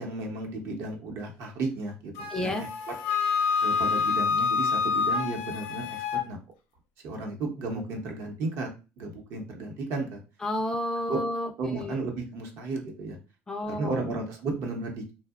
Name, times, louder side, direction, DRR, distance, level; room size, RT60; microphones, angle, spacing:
voice 1, 0.0-2.5 3.6-6.4 7.0-8.7 9.0-10.2 11.1-11.2 11.6-13.2 13.8-15.1, right 3 dB, 60° right, 3 dB, 0.7 m, -33 dB
Wind instrument woodwind instrument, 2.2-6.3, left 5 dB, 80° left, 0.6 m, -27 dB
voice 2, 2.3-2.7 10.4-12.1 13.5-14.1, left 1 dB, 15° left, 4 dB, 0.3 m, -31 dB
2.7 x 2.0 x 2.3 m, 0.30 s
cardioid pair, 125°, 5 cm